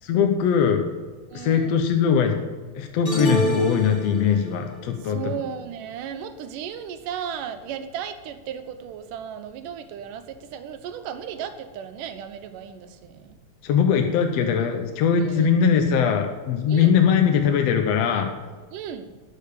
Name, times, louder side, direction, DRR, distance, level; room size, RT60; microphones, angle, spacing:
voice 1, 0.0-0.8 1.3-2.4 2.8-5.2 13.6-18.3, left 7 dB, 65° left, 4 dB, 1.8 m, -21 dB
voice 2, 1.3-1.8 5.0-13.4 15.2-15.6 16.7-17.0 18.7-19.1, right 8 dB, 90° right, 9 dB, 2.5 m, -35 dB
sound 1, 3.0-4.6, equal, 40° left, 0.7 m, -26 dB
12.0 x 6.7 x 8.5 m, 1.4 s
omnidirectional pair, 3.6 m